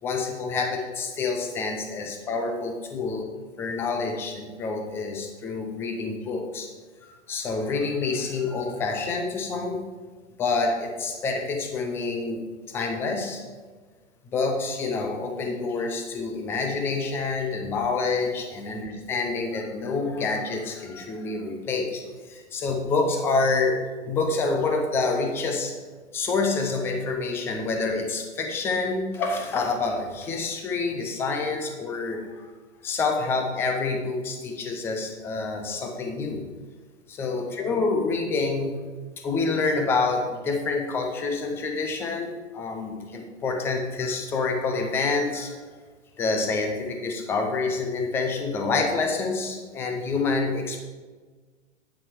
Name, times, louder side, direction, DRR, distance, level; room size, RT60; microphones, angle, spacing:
voice 1, 0.0-3.3 3.6-6.7 7.0-9.8 10.4-13.4 14.3-25.7 26.1-32.4 32.8-36.4 37.1-38.8 39.2-45.7 46.2-50.8, left 3 dB, 5° left, 3 dB, 0.4 m, -27 dB
9.1 x 6.0 x 4.6 m, 1.4 s
hypercardioid pair, 135°, 37 cm